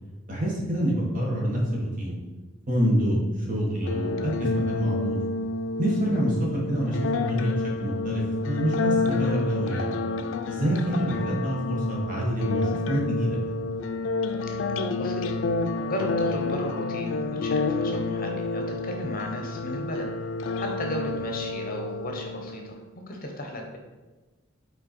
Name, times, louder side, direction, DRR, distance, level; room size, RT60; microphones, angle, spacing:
voice 1, 0.3-2.2 2.7-5.2 5.8-9.9 10.5-13.6, right 1 dB, 40° right, -2 dB, 1.4 m, -27 dB
sound 1, 3.8-22.8, left 3 dB, 70° left, 0.4 m, -29 dB
voice 2, 15.0-20.1 20.6-23.8, left 1 dB, 45° left, 2 dB, 0.9 m, -35 dB
5.4 x 4.3 x 4.2 m, 1.2 s
head